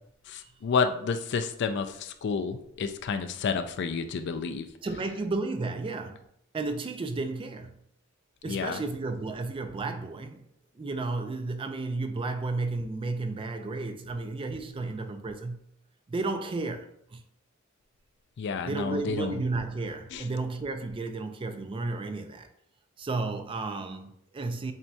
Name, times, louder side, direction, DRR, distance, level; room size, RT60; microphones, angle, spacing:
voice 1, 0.3-4.7 8.5-8.8 18.4-19.4 20.1-20.2, left 5 dB, 55° left, 0.4 m, -30 dB
voice 2, 4.8-6.2 6.5-7.7 8.4-10.4 10.8-15.6 16.1-17.2 18.7-22.5 23.0-24.7, right 3 dB, 25° right, 0.4 m, -33 dB
7.2 x 2.7 x 2.3 m
head